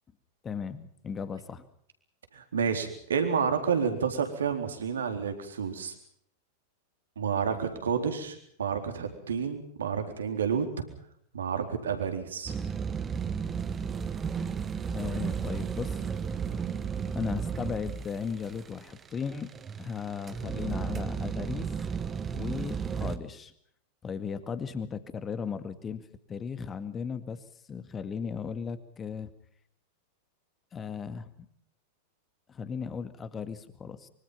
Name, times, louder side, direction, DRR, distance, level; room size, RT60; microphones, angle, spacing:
voice 1, 0.4-1.6 14.9-16.0 17.1-19.5 19.8-21.7 22.3-23.5 24.0-29.3 30.7-31.3 32.5-34.1, left 6 dB, 20° left, 11 dB, 2.1 m, -36 dB
voice 2, 2.3-5.9 7.2-10.7 11.3-12.5, right 6 dB, 65° right, 6 dB, 3.9 m, -30 dB
sound 1, 12.5-23.2, right 6 dB, 20° right, 1.5 m, -34 dB
25.0 x 24.0 x 5.7 m, 0.67 s
figure-of-eight pair, 90°, 0 cm